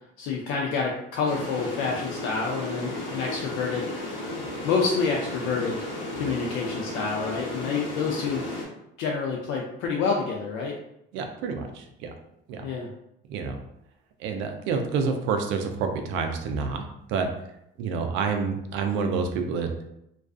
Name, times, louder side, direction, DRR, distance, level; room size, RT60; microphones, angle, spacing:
voice 1, 0.2-3.9 4.6-5.8 6.2-8.4 9.0-10.8 12.6-12.9, left 5 dB, 90° left, -1 dB, 0.4 m, -28 dB
Tunnel Falls Bridge Dangle raw, 1.2-8.6, left 2 dB, 70° left, 0.8 m, -34 dB
voice 2, 11.1-12.1 12.5-12.7 13.3-13.6 14.2-17.3 17.8-19.8, right 5 dB, 70° right, 5 dB, 0.5 m, -28 dB
2.3 x 2.3 x 2.4 m, 0.79 s
cardioid pair, 155°, 20 cm